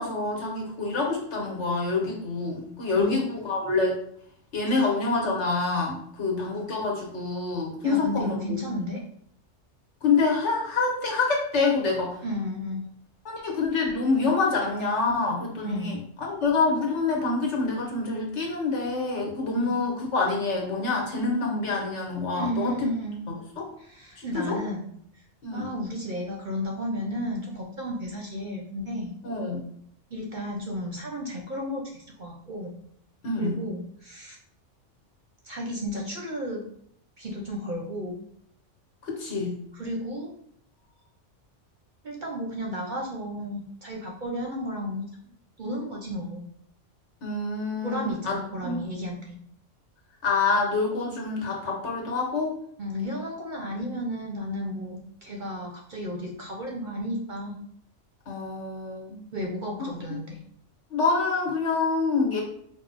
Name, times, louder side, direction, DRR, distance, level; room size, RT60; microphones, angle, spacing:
voice 1, 0.0-4.0 4.5-8.4 10.0-12.2 13.2-22.9 23.6-23.7 24.2-24.6 25.4-25.7 29.2-29.6 33.2-33.6 39.0-39.6 47.2-48.4 48.6-48.8 50.2-52.6 58.3-59.2 59.8-59.9 60.9-62.4, left 3 dB, 70° left, -1 dB, 1.3 m, -26 dB
voice 2, 7.8-9.0 12.2-12.9 15.6-16.0 19.5-19.8 22.3-23.2 23.8-25.2 25.5-29.1 30.1-32.8 33.4-34.4 35.4-36.6 37.2-38.2 39.7-40.3 42.0-45.1 45.6-46.4 47.8-49.4 52.8-57.6 59.3-60.4, equal, 50° right, -1 dB, 0.6 m, -33 dB
4.6 x 2.0 x 3.9 m, 0.68 s
omnidirectional pair, 1.3 m